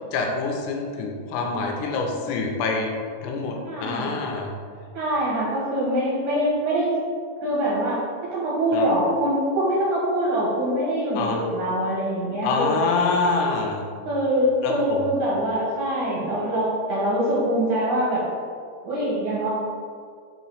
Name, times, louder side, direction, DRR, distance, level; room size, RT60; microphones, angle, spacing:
voice 1, 0.1-2.9 3.2-4.5 8.7-8.9 11.1-11.5 12.4-13.8 14.6-15.1, left 4 dB, 80° left, 0 dB, 2.7 m, -25 dB
voice 2, 3.6-4.1 4.9-6.9 7.4-12.8 14.0-18.3 18.8-19.5, right 1 dB, 80° right, -6 dB, 1.7 m, -24 dB
7.3 x 3.0 x 5.5 m, 2.2 s
omnidirectional pair, 5.1 m